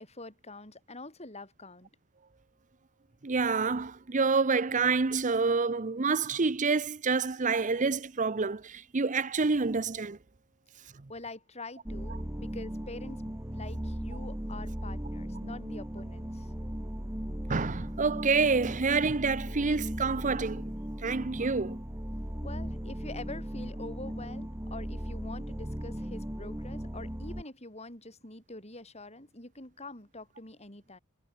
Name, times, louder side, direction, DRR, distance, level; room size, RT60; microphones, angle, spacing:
voice 1, 0.0-1.9 11.1-16.5 22.4-31.0, left 2 dB, 30° left, 7.1 m, -45 dB
voice 2, 3.2-10.2 17.5-20.6 21.0-21.8, right 4 dB, 35° right, 0.7 m, -28 dB
sound 1, 11.9-27.4, equal, 10° right, 1.7 m, -37 dB
head